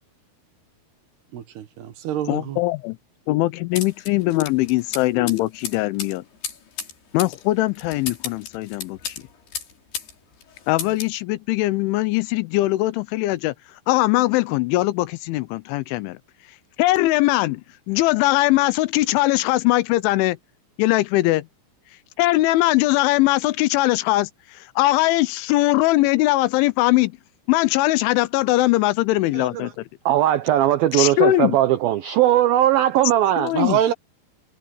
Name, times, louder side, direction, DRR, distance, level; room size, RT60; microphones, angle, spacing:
voice 1, 1.3-2.6 33.5-33.9, right 10 dB, 65° right, 3.3 m, -25 dB
voice 2, 2.3-3.0 3.3-6.2 7.1-9.2 10.7-13.5 13.9-16.2 16.8-17.6 17.9-20.4 20.8-21.5 22.2-24.3 24.8-27.1 27.5-29.7 30.9-31.6 33.4-33.8, left 18 dB, 85° left, 3.2 m, -20 dB
sound 1, 3.8-10.1 10.4-11.2, left 7 dB, 60° left, 6.0 m, -34 dB
voice 3, 29.3-29.7 30.1-33.5, right 12 dB, 85° right, 2.1 m, -19 dB
omnidirectional pair, 5.4 m